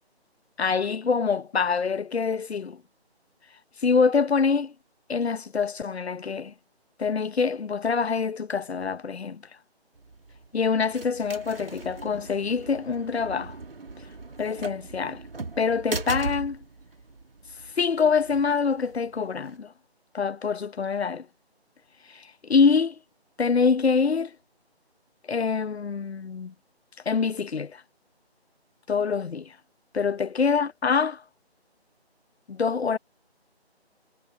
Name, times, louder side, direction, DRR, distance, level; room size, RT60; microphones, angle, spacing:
voice 1, 0.6-2.8 3.8-4.7 5.1-6.5 7.0-9.4 10.5-13.6 14.4-15.2 15.6-16.6 17.8-19.7 20.1-21.3 22.1-23.0 23.4-24.3 25.3-26.5 27.1-27.8 28.9-29.5 29.9-31.2 32.5-33.0, left 5 dB, 70° left, 0.8 m, -25 dB
sound 1, 9.9-19.6, right 3 dB, 60° right, 2.4 m, -39 dB
figure-of-eight pair, 165°, 33 cm